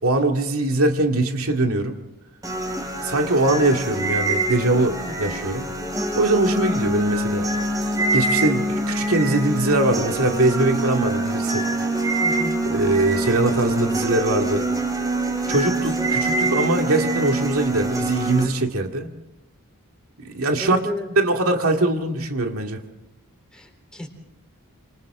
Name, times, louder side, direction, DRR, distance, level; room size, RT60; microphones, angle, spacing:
voice 1, 0.0-2.0 3.0-5.7 6.1-7.5 8.1-11.7 12.7-14.6 15.5-19.1 20.2-20.8 21.2-22.8, right 2 dB, 70° right, 3 dB, 2.4 m, -22 dB
sound 1, 2.4-18.4, right 2 dB, 15° right, 4.0 m, -25 dB
voice 2, 5.0-5.4 12.2-12.6 15.4-15.7 20.6-21.1 23.5-24.1, left 1 dB, 5° left, 3 dB, 3.8 m, -33 dB
28.5 x 27.5 x 3.8 m, 0.91 s
head